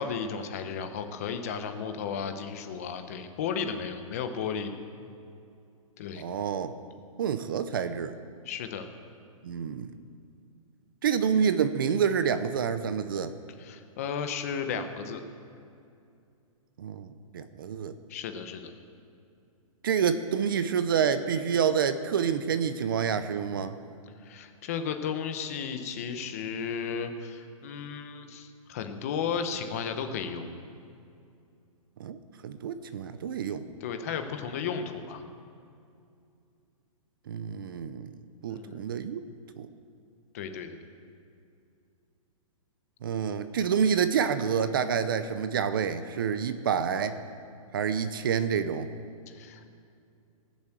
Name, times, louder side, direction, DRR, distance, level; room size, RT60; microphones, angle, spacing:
voice 1, 0.0-4.7 6.0-6.2 8.4-8.9 13.6-15.2 18.1-18.7 24.2-30.5 33.8-35.2 38.4-38.8 40.3-40.8 49.3-49.6, left 6 dB, 25° left, 8 dB, 0.8 m, -34 dB
voice 2, 6.2-6.7 7.2-8.1 9.4-9.9 11.0-13.3 16.8-17.9 19.8-23.8 32.0-33.6 37.3-38.1 38.4-39.2 39.6-39.7 43.0-47.2 47.7-48.9, right 7 dB, 40° right, 11 dB, 0.6 m, -28 dB
18.5 x 7.2 x 8.0 m, 2.5 s
hypercardioid pair, 175°, 18 cm